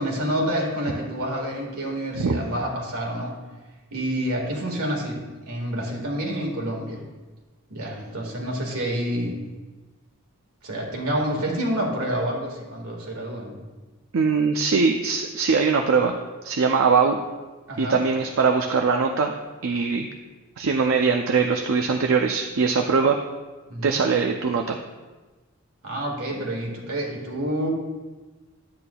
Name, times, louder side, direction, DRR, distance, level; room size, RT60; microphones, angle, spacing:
voice 1, 0.0-3.4 3.9-7.1 7.7-9.4 10.6-13.6 17.7-18.0 23.7-24.0 25.8-27.7, equal, 85° right, 0 dB, 1.9 m, -28 dB
voice 2, 14.1-16.2 16.4-17.2 17.8-19.3 19.6-20.1 20.6-23.2 23.8-24.8, right 5 dB, 65° right, 3 dB, 0.5 m, -21 dB
10.5 x 8.6 x 2.3 m, 1.3 s
head